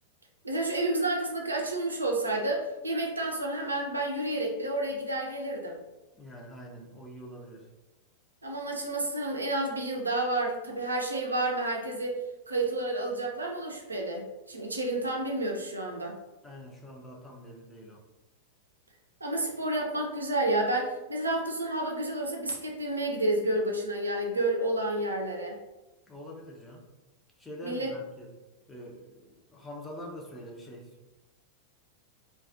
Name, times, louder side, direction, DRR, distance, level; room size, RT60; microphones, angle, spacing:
voice 1, 0.4-5.8 8.4-12.2 12.5-16.2 19.2-25.6 27.6-27.9, right 1 dB, 80° right, 0 dB, 0.4 m, -30 dB
voice 2, 6.1-7.7 16.4-18.0 26.1-26.9 27.4-28.3 28.7-31.1, equal, 10° left, -1 dB, 0.5 m, -45 dB
2.3 x 2.2 x 2.4 m, 1.1 s
figure-of-eight pair, 90°, 0 cm